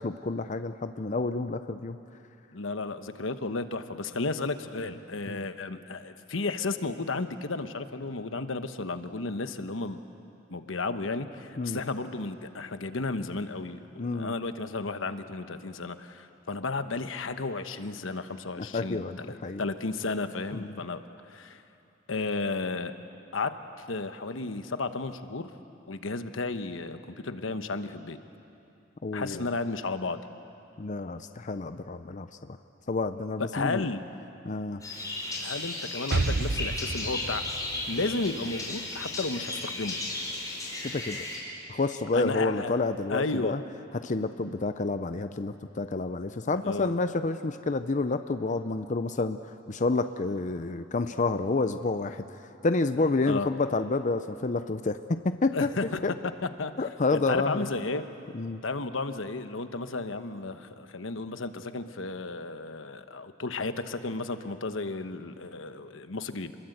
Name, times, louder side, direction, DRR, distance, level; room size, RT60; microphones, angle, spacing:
voice 1, 0.0-2.0 5.3-5.4 11.6-11.8 14.0-14.3 18.6-19.6 20.5-20.8 29.0-29.4 30.8-32.3 32.9-33.9 34.4-34.8 40.8-41.2 41.7-43.6 43.9-49.4 49.7-52.2 52.6-55.7 56.0-56.1 56.8-57.7 58.3-58.6, left 3 dB, 40° left, 9 dB, 0.6 m, -29 dB
voice 2, 2.5-10.0 10.5-21.0 21.3-21.6 22.1-22.9 23.3-23.6 23.9-25.5 25.9-28.2 29.1-30.2 33.4-34.1 35.4-37.5 37.9-40.0 42.1-42.8 43.1-43.6 46.6-47.0 53.2-53.5 55.5-58.0 58.6-66.6, left 3 dB, 80° left, 9 dB, 1.1 m, -33 dB
sound 1, 34.8-41.4, left 2 dB, 20° left, 5.2 m, -35 dB
Explosion, 36.1-39.9, right 3 dB, 55° right, 0.7 m, -32 dB
28.0 x 21.5 x 8.0 m, 2.8 s
head